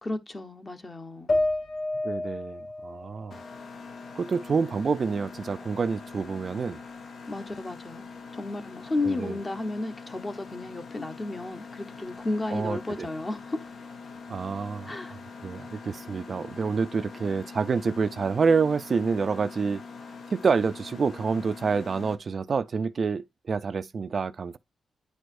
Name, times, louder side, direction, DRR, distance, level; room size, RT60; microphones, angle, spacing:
voice 1, 0.0-1.3 7.3-13.7 14.9-15.1, left 2 dB, 25° left, 1.0 m, -33 dB
sound 1, 1.3-4.7 5.1-6.1, left 2 dB, 45° left, 2.6 m, -32 dB
voice 2, 2.0-3.4 4.2-6.8 9.0-9.4 12.5-13.1 14.3-14.9 15.4-19.8 20.3-24.6, right 5 dB, 45° right, 0.4 m, -27 dB
Mechanisms, 3.3-22.2, left 4 dB, 65° left, 1.1 m, -43 dB
9.9 x 4.7 x 2.5 m
cardioid pair, 100°, 0 cm